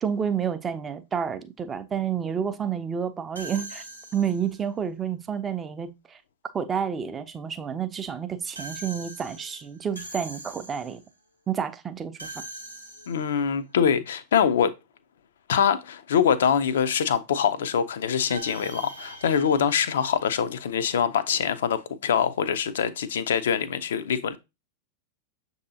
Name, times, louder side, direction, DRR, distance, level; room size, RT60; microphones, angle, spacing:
voice 1, 0.0-3.8 4.1-6.2 6.5-11.0 11.5-12.3, right 7 dB, 20° right, 0.4 m, -29 dB
sound 1, 3.3-4.6 8.5-11.1 12.2-13.5 18.3-20.8, right 2 dB, 90° right, 0.7 m, -42 dB
voice 2, 13.1-14.7 15.5-24.4, left 7 dB, 60° left, 0.4 m, -24 dB
6.5 x 2.7 x 2.7 m
figure-of-eight pair, 90°, 0 cm